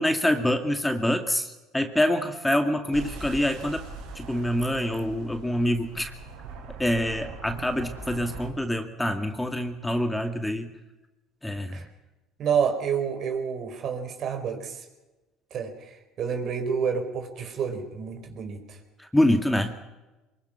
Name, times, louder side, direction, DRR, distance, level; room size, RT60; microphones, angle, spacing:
voice 1, 0.0-3.8 4.2-6.1 6.8-10.7 11.4-11.8 19.0-19.8, left 1 dB, 5° left, 6 dB, 2.2 m, -26 dB
sound 1, 2.9-8.5, right 4 dB, 80° right, 6.2 m, -41 dB
voice 2, 12.4-14.8 15.5-18.6, right 6 dB, 55° right, 5 dB, 4.8 m, -29 dB
23.5 x 22.5 x 6.0 m, 1.1 s
supercardioid pair, 85°, 0 cm